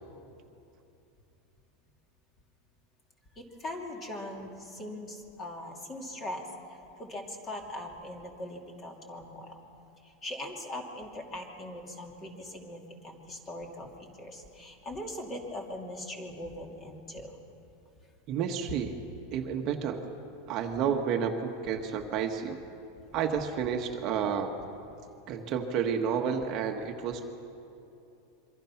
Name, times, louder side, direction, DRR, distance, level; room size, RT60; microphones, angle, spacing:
voice 1, 3.4-9.5 10.0-17.4, left 1 dB, 20° left, 2 dB, 2.7 m, -41 dB
voice 2, 18.3-19.0 19.3-20.0 20.5-22.6 23.1-24.5 25.3-27.2, right 7 dB, 35° right, 4 dB, 1.4 m, -30 dB
26.5 x 24.0 x 5.9 m, 2.8 s
supercardioid pair, 165°, 0 cm